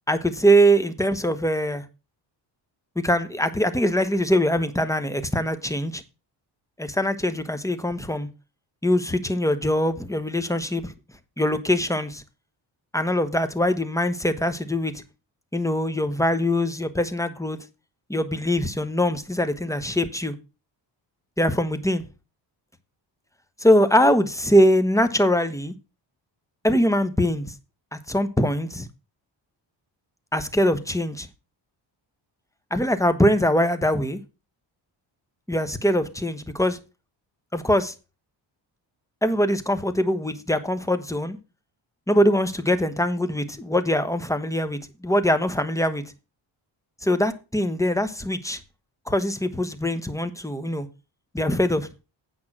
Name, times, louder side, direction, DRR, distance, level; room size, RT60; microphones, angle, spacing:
voice 1, 0.1-1.8 3.0-6.0 6.8-8.3 8.8-10.9 11.4-12.2 12.9-15.0 15.5-17.6 18.1-20.3 21.4-22.0 23.6-25.7 26.6-27.5 27.9-28.9 30.3-31.3 32.7-34.2 35.5-36.8 37.5-37.9 39.2-41.4 42.1-46.0 47.0-48.6 49.1-50.9 51.3-51.9, equal, 5° left, 1.2 m, -22 dB
8.8 x 5.7 x 6.1 m
cardioid pair, 95°, 46 cm